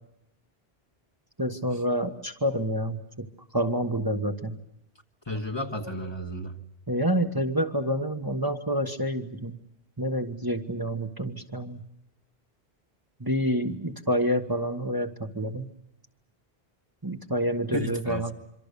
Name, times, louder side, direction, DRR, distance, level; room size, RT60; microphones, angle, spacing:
voice 1, 1.4-3.3 3.5-4.6 6.9-9.5 10.0-11.8 13.2-15.7 17.0-18.3, equal, 20° right, 4 dB, 1.5 m, -28 dB
voice 2, 5.3-6.6 17.7-18.3, left 1 dB, 25° left, 5 dB, 1.5 m, -33 dB
26.5 x 24.5 x 6.9 m, 0.82 s
omnidirectional pair, 1.1 m